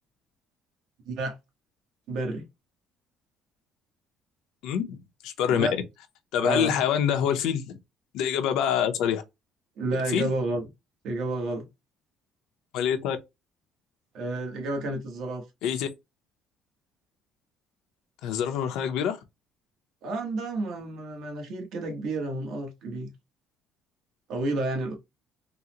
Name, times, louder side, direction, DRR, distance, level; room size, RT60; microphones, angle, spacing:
voice 1, 1.0-1.4 2.1-2.5 5.5-5.7 6.4-6.8 9.8-10.7 11.0-11.7 14.1-15.4 20.0-23.1 24.3-24.9, right 2 dB, 60° right, 1.0 m, -30 dB
voice 2, 4.6-5.0 5.2-5.8 6.3-7.6 8.1-9.2 10.1-10.3 12.7-13.2 15.6-15.9 18.2-19.2, left 9 dB, 70° left, 0.6 m, -25 dB
3.8 x 2.0 x 2.8 m
cardioid pair, 170°, 0 cm